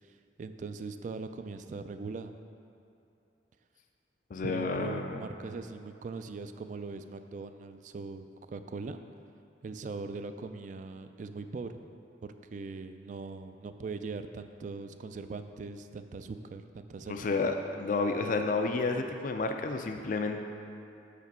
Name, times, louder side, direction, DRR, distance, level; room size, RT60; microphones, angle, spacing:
voice 1, 0.4-2.3 4.4-9.0 9.6-11.8 12.2-17.2, right 4 dB, 45° right, 9 dB, 0.3 m, -40 dB
voice 2, 4.3-5.3 17.1-20.4, left 3 dB, 45° left, 5 dB, 0.4 m, -31 dB
6.8 x 5.1 x 5.3 m, 2.7 s
head